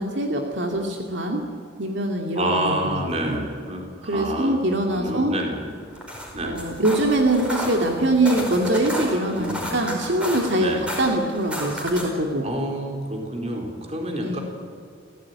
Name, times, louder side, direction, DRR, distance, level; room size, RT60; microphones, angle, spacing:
voice 1, 0.0-1.4 1.8-3.4 4.1-5.4 6.4-12.5 14.2-14.4, right 1 dB, 65° right, 2 dB, 2.4 m, -23 dB
voice 2, 2.3-4.6 4.9-5.7 6.3-6.6 9.3-9.8 10.5-10.8 12.4-14.4, right 1 dB, 30° right, 2 dB, 4.3 m, -28 dB
sound 1, 5.8-12.2, equal, 5° right, 4.8 m, -33 dB
27.5 x 16.0 x 9.7 m, 2.3 s
head